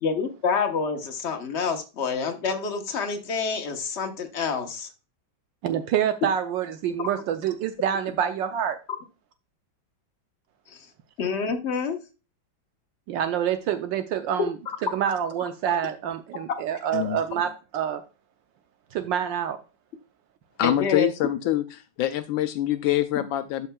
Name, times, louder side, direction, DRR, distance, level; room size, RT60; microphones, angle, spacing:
voice 1, 0.0-4.9 7.0-7.1 8.9-9.0 10.7-10.9 11.2-12.0 14.4-14.5 20.6-21.1, left 5 dB, 45° left, 6 dB, 1.1 m, -27 dB
voice 2, 5.6-8.8 13.1-14.5 14.9-18.0 18.9-19.6, right 9 dB, 75° right, 8 dB, 1.3 m, -27 dB
voice 3, 20.6-21.6 22.0-23.7, left 13 dB, 80° left, 10 dB, 1.3 m, -25 dB
11.5 x 5.6 x 2.2 m, 0.32 s
omnidirectional pair, 2.1 m